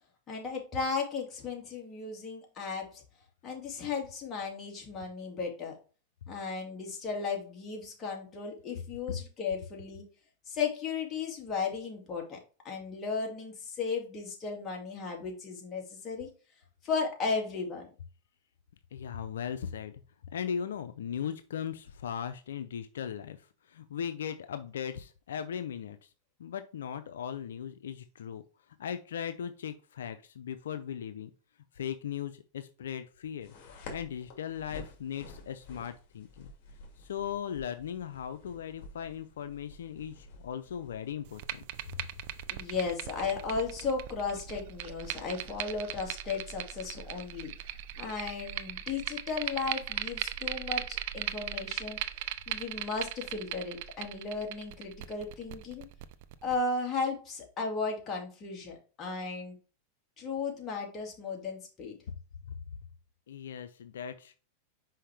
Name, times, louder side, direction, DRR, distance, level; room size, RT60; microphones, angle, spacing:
voice 1, 0.3-3.0 3.4-5.8 6.3-10.0 10.5-12.4 12.6-16.3 16.8-17.9 42.5-47.5 48.0-52.0 52.5-55.9 56.4-59.6 60.2-61.9, left 4 dB, 30° left, 0 dB, 2.3 m, -35 dB
voice 2, 18.9-20.0 20.3-26.1 26.4-28.4 28.8-31.3 31.7-33.5 33.9-36.5 37.0-41.6 63.3-64.4, left 8 dB, 85° left, 10 dB, 0.5 m, -38 dB
sound 1, 33.4-46.9, left 3 dB, 55° left, 2.4 m, -52 dB
sound 2, 41.3-56.5, right 13 dB, 60° right, 0.6 m, -39 dB
5.6 x 5.2 x 3.4 m, 0.35 s
hypercardioid pair, 115°, 0 cm